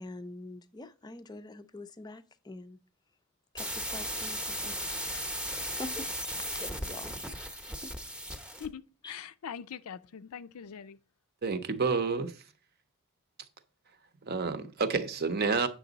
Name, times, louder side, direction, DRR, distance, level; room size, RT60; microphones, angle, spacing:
voice 1, 0.0-2.8 3.5-5.3 5.6-7.4 7.8-7.9 9.0-9.1, left 2 dB, 20° left, 0.4 m, -45 dB
sound 1, 3.6-8.7, equal, 5° right, 0.8 m, -36 dB
voice 2, 8.6-11.0, left 8 dB, 80° left, 0.5 m, -42 dB
voice 3, 11.4-12.3 14.3-15.7, right 4 dB, 45° right, 0.7 m, -29 dB
8.4 x 6.1 x 3.9 m
head